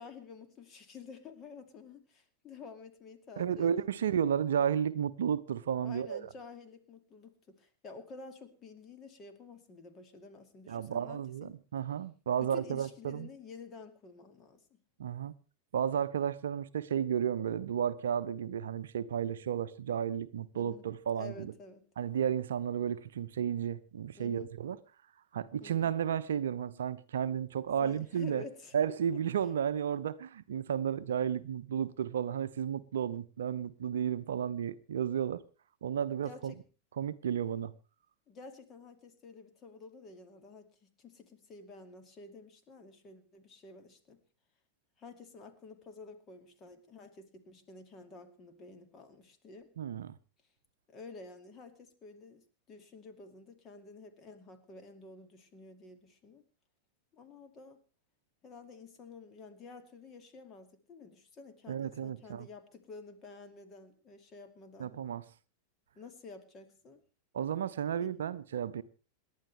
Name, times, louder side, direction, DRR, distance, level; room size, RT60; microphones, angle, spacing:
voice 1, 0.0-3.9 5.8-11.5 12.4-14.8 20.5-20.8 21.2-21.8 24.2-24.5 25.6-25.9 27.8-28.7 29.1-29.2 36.2-36.6 38.3-44.2 45.0-49.7 50.9-56.4 57.1-57.8 58.4-65.0 66.0-67.0 68.0-68.2, left 4 dB, 30° left, 2.4 m, -51 dB
voice 2, 3.4-6.3 10.7-13.3 15.0-15.3 15.7-21.5 22.0-24.8 25.3-28.4 28.7-35.4 35.8-36.5 37.0-37.7 49.8-50.1 61.7-62.5 64.8-65.2 67.3-68.8, right 8 dB, 65° right, 0.7 m, -33 dB
27.5 x 11.0 x 3.4 m
figure-of-eight pair, 90°, 0 cm